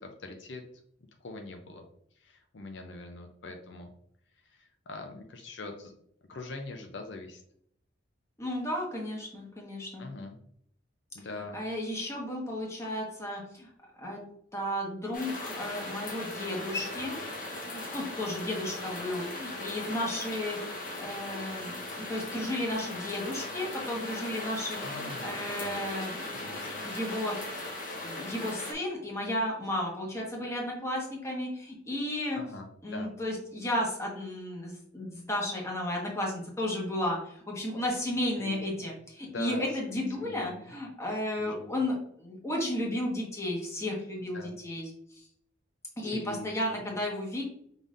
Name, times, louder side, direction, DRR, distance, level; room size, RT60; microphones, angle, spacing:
voice 1, 0.0-0.6 1.2-1.8 2.2-3.9 4.4-5.9 6.3-7.4 10.0-10.4 11.1-11.6 16.9-17.1 24.7-25.8 26.3-26.8 32.3-33.1 38.4-38.9 39.3-39.6 39.9-40.7 41.4-41.7 44.2-44.5 46.0-46.8, left 2 dB, 65° left, 4 dB, 0.5 m, -43 dB
voice 2, 8.4-10.1 11.5-13.7 14.0-14.2 14.5-17.2 17.6-20.6 21.0-27.3 28.0-32.4 32.8-44.8 46.0-47.4, left 1 dB, 15° left, -2 dB, 1.2 m, -33 dB
sound 1, 15.1-28.7, left 2 dB, 45° left, 1.1 m, -38 dB
5.2 x 3.9 x 2.5 m, 0.69 s
head